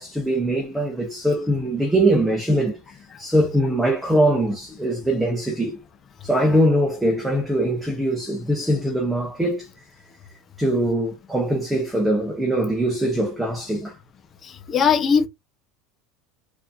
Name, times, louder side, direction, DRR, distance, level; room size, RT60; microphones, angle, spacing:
voice 1, 0.0-2.8 3.2-5.8 6.2-9.7 10.6-13.9, right 1 dB, 5° right, 1.0 m, -22 dB
voice 2, 14.7-15.3, left 6 dB, 25° left, 0.8 m, -18 dB
4.6 x 3.0 x 2.7 m
cardioid pair, 165°, 0 cm